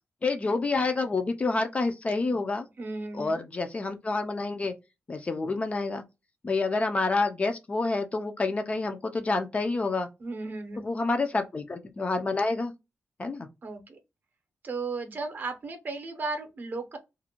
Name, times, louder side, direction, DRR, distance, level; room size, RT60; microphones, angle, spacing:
voice 1, 0.2-2.7 3.1-4.7 5.1-6.0 6.4-10.1 10.8-12.7 13.2-13.5, left 3 dB, 30° left, 0.3 m, -28 dB
voice 2, 2.8-3.3 10.2-10.9 13.6-14.0 14.6-17.0, right 3 dB, 40° right, 0.6 m, -35 dB
2.4 x 2.1 x 2.8 m
wide cardioid pair, 155°, 5 cm